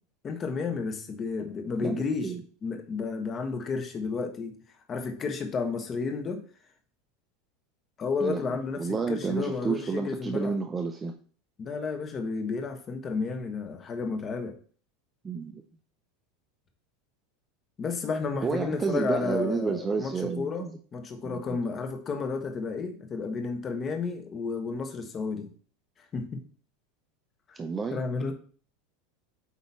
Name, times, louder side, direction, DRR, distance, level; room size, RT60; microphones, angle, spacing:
voice 1, 0.2-4.6 4.9-6.4 8.0-10.5 11.6-14.6 17.8-25.5 26.1-26.4 27.5-27.6 27.9-28.3, left 4 dB, 20° left, 1.1 m, -32 dB
voice 2, 8.2-11.2 15.2-15.6 18.4-20.8 21.2-21.4 27.6-28.0, right 5 dB, 15° right, 0.6 m, -30 dB
8.2 x 3.0 x 5.6 m
supercardioid pair, 160°, 0 cm